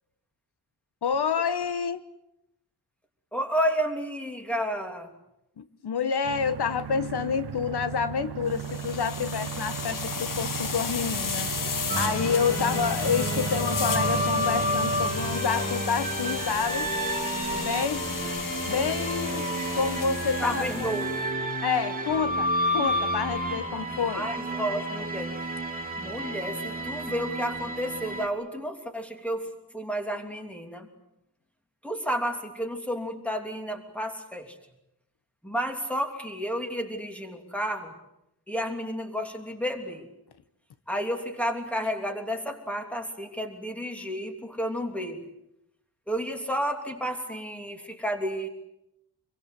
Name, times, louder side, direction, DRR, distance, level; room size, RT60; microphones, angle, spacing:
voice 1, 1.0-2.0 5.6-11.5 12.0-16.9 17.6-18.1 18.7-20.9 21.6-24.3, left 6 dB, 90° left, 12 dB, 1.3 m, -28 dB
voice 2, 3.3-5.1 20.4-21.3 23.9-25.3 26.0-29.5 29.7-30.9 31.8-34.5 35.4-37.9 38.5-40.1 40.9-45.2 46.1-48.5, equal, 5° left, 4 dB, 3.1 m, -31 dB
sound 1, 6.2-15.4, right 9 dB, 85° right, 0.9 m, -36 dB
sound 2, 8.5-21.2, left 6 dB, 55° left, 1.5 m, -34 dB
sound 3, 11.9-28.3, right 1 dB, 25° right, 2.6 m, -30 dB
27.0 x 23.0 x 8.2 m, 0.83 s
wide cardioid pair, 165°, 38 cm